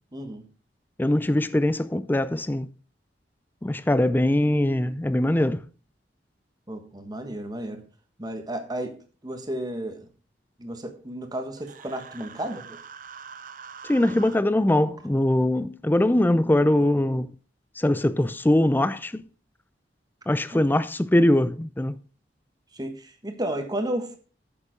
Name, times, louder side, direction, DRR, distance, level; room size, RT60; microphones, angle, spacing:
voice 1, 0.1-0.4 6.7-7.8 8.2-8.9 9.2-10.1 10.6-12.8 20.5-20.6 22.7-24.2, right 1 dB, 20° right, 1.4 m, -32 dB
voice 2, 1.0-2.7 3.6-5.6 13.8-17.3 17.8-19.2 20.3-22.0, left 1 dB, 10° left, 0.4 m, -22 dB
Human voice, 11.6-14.4, right 6 dB, 50° right, 0.7 m, -44 dB
9.3 x 7.0 x 5.1 m
head